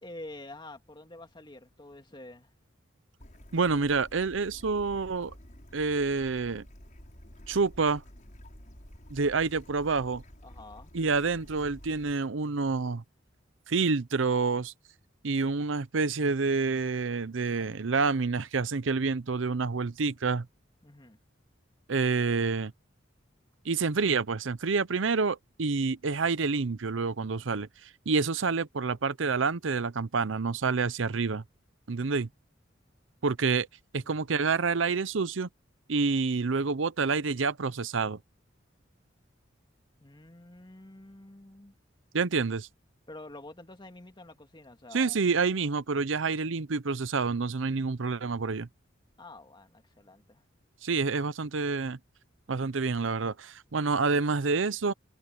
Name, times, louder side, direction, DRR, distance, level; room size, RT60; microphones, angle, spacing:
voice 1, 0.0-2.5 10.4-10.9 20.8-21.2 34.0-34.2 40.0-41.7 43.1-45.2 49.2-50.4, left 2 dB, 25° left, 2.4 m, -47 dB
Bird / Stream, 3.2-12.1, equal, 45° left, 6.7 m, -50 dB
voice 2, 3.5-5.3 5.7-6.6 7.5-8.0 9.1-10.2 10.9-13.0 13.7-14.7 15.2-20.5 21.9-22.7 23.6-27.7 28.1-31.4 31.9-32.3 33.2-33.7 33.9-35.5 35.9-38.2 42.1-42.7 44.9-48.7 50.8-52.0 52.5-54.9, right 4 dB, 75° right, 0.7 m, -28 dB
head